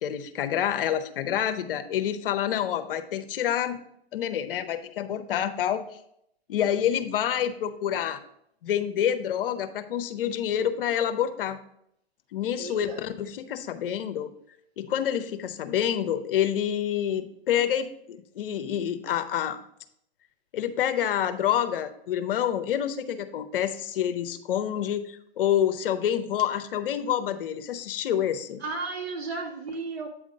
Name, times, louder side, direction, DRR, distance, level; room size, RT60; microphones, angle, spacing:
voice 1, 0.0-3.8 4.1-5.8 6.5-8.2 8.6-11.6 12.3-14.3 14.8-19.6 20.5-28.6, left 10 dB, 60° left, 11 dB, 0.8 m, -27 dB
voice 2, 12.5-13.0 28.6-30.1, right 3 dB, 80° right, 2 dB, 2.0 m, -34 dB
8.5 x 3.6 x 5.2 m, 0.72 s
hypercardioid pair, 130°, 31 cm